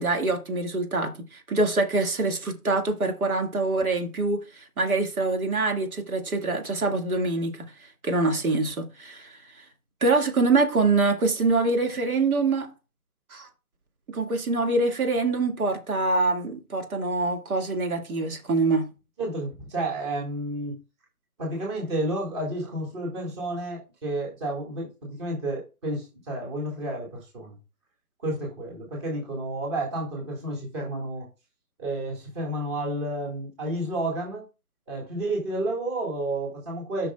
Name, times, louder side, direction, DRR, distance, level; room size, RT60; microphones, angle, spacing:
voice 1, 0.0-7.6 8.0-9.4 10.0-12.7 13.3-13.5 14.1-18.9, right 3 dB, 70° right, 2.1 m, -25 dB
voice 2, 19.2-20.8 21.4-27.6 28.2-31.3 31.8-34.4 34.9-37.1, right 1 dB, 20° right, 1.9 m, -31 dB
11.5 x 6.0 x 2.3 m
hypercardioid pair, 165°, 45 cm